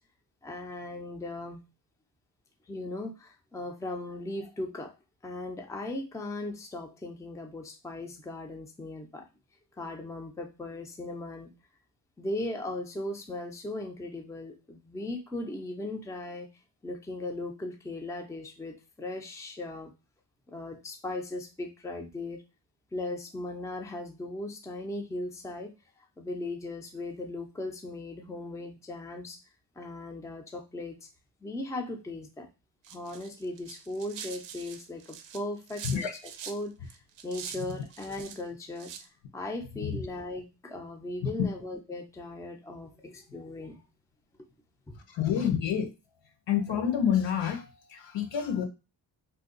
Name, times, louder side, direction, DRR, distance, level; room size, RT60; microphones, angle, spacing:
voice 1, 0.4-1.6 2.7-4.9 5.2-9.3 9.8-11.5 12.2-16.5 16.8-19.9 20.5-22.4 22.9-25.7 26.2-29.4 29.8-31.0 31.4-32.5 32.9-36.1 36.5-37.0 37.2-38.9 39.3-43.8 44.9-45.0, left 2 dB, 5° left, 0.5 m, -38 dB
sound 1, 32.8-36.6 36.9-38.4 38.8-39.0, right 8 dB, 80° right, 0.6 m, -44 dB
voice 2, 45.1-45.9 46.5-48.7, left 8 dB, 75° left, 0.8 m, -28 dB
2.7 x 2.3 x 3.7 m
cardioid pair, 115°, 44 cm